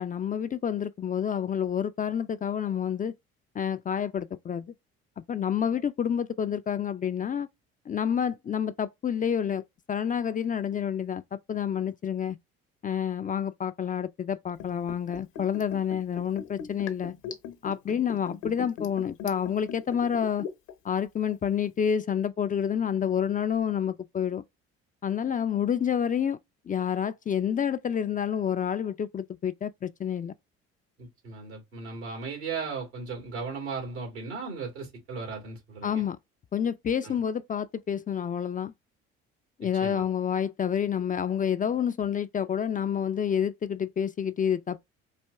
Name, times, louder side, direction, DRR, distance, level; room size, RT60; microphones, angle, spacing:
voice 1, 0.0-3.1 3.5-4.7 5.3-7.5 7.9-9.6 9.9-11.2 11.5-12.4 12.8-17.1 17.6-20.5 20.8-24.4 25.0-26.4 26.7-30.3 35.8-36.2 36.5-38.7 39.6-44.9, left 8 dB, 25° left, 0.4 m, -28 dB
Liquid, 14.6-20.7 21.0-21.1, left 7 dB, 70° left, 1.0 m, -39 dB
voice 2, 31.0-36.0 37.0-37.2 39.8-40.0, right 4 dB, 90° right, 2.3 m, -36 dB
4.2 x 2.8 x 3.4 m
hypercardioid pair, 60°, 32 cm